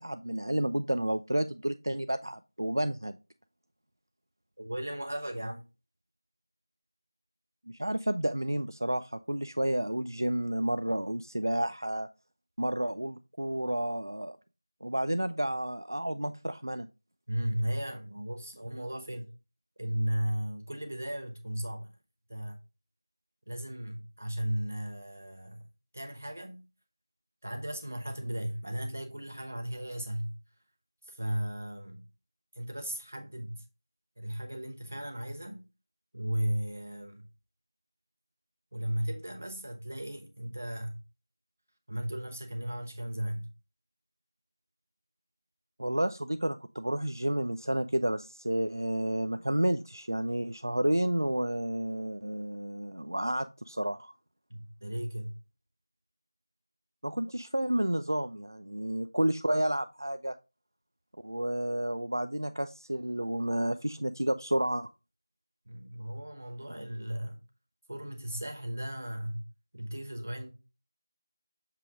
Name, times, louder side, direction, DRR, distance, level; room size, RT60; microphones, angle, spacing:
voice 1, 0.0-3.2 7.8-12.1 12.6-14.4 14.8-16.9 45.8-54.1 57.0-60.4 61.2-64.9, right 1 dB, 60° right, 0.4 m, -31 dB
voice 2, 4.6-5.6 17.3-19.3 19.8-21.9 22.3-22.6 23.5-25.7 25.9-26.6 27.4-30.4 31.0-32.0 32.5-33.6 34.2-35.6 36.1-37.3 38.7-41.0 41.9-43.5 54.5-55.4 65.7-67.4 67.9-69.4 69.7-70.5, right 1 dB, 30° right, 0.9 m, -35 dB
7.3 x 3.8 x 3.4 m
figure-of-eight pair, 175°, 2 cm